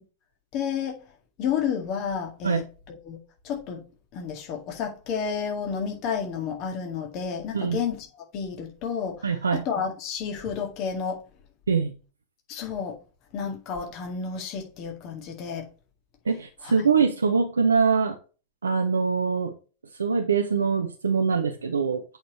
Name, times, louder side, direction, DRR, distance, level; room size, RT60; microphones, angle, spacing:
voice 1, 0.5-1.0 1.4-2.6 2.9-3.2 3.4-3.8 4.1-8.1 8.3-9.2 9.5-11.2 12.5-12.9 13.3-15.6, left 6 dB, 40° left, 2.0 m, -30 dB
voice 2, 9.2-9.6 11.7-11.9 13.4-13.5 16.3-18.2 18.6-19.5 20.0-22.0, right 5 dB, 75° right, 0.7 m, -23 dB
8.1 x 5.1 x 3.1 m
figure-of-eight pair, 90°, 0 cm